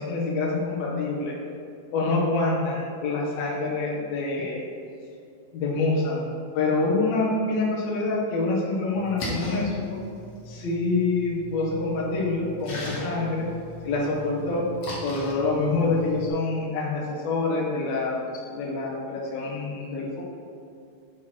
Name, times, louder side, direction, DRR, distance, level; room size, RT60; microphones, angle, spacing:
voice 1, 0.0-1.4 1.9-4.7 5.5-10.0 10.5-13.5 13.8-14.6 15.0-18.1 18.5-20.2, left 3 dB, 60° left, -5 dB, 1.9 m, -26 dB
Splash splatter, 8.9-16.3, left 1 dB, 80° left, 1.3 m, -38 dB
6.3 x 4.7 x 4.5 m, 2.5 s
omnidirectional pair, 4.6 m